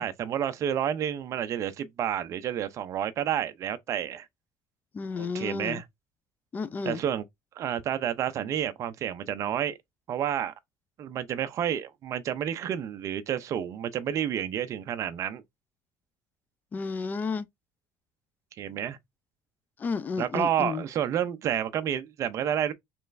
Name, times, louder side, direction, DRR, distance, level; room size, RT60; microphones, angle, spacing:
voice 1, 0.0-4.3 5.1-5.8 6.8-7.2 7.6-9.8 10.1-10.5 11.0-15.4 18.6-19.0 20.2-22.7, right 9 dB, 40° right, 0.5 m, -30 dB
voice 2, 4.9-5.8 6.5-7.0 16.7-17.5 19.8-20.8, left 4 dB, 20° left, 0.4 m, -32 dB
4.2 x 3.2 x 2.5 m
cardioid pair, 145°, 8 cm